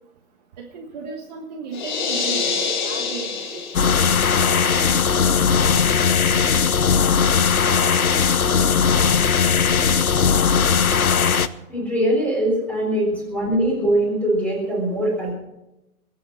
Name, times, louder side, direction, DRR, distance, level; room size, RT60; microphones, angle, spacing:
voice 1, 0.6-3.6 5.0-5.2 9.3-10.4, right 5 dB, 30° right, 0 dB, 1.5 m, -36 dB
sound 1, 1.7-4.2, left 5 dB, 30° left, 1.6 m, -26 dB
sound 2, 3.7-11.5, left 6 dB, 70° left, 0.9 m, -18 dB
voice 2, 11.7-15.3, right 1 dB, 5° left, -2 dB, 4.0 m, -22 dB
21.5 x 8.6 x 6.3 m, 0.94 s
figure-of-eight pair, 135°, 45 cm